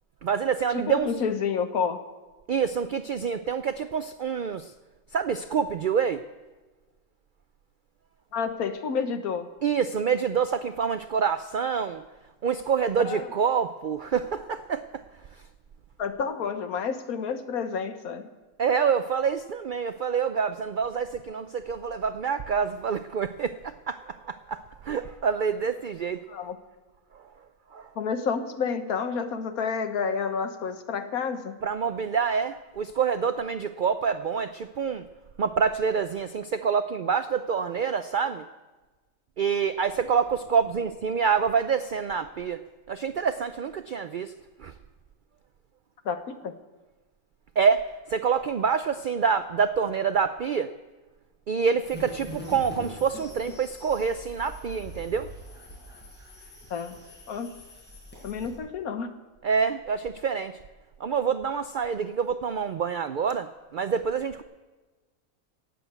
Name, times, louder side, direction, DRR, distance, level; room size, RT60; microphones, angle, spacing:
voice 1, 0.2-1.2 2.5-4.7 5.1-6.2 9.6-12.0 12.4-15.0 15.3-15.4 18.6-26.5 27.1-27.3 27.7-27.9 31.6-35.1 35.4-38.5 39.4-42.6 42.9-44.3 44.6-44.7 47.6-50.7 51.5-55.3 59.4-60.6 61.0-64.4, right 6 dB, 80° right, 10 dB, 0.4 m, -27 dB
voice 2, 0.7-2.0 8.3-9.5 13.0-13.2 16.0-18.3 26.3-26.6 28.0-31.5 46.0-46.5 56.7-57.0 57.3-57.5 58.2-59.1, left 6 dB, 90° left, 8 dB, 1.5 m, -29 dB
sound 1, 51.8-58.6, equal, 5° left, 5.3 m, -43 dB
18.0 x 7.8 x 8.0 m, 1.2 s
omnidirectional pair, 1.5 m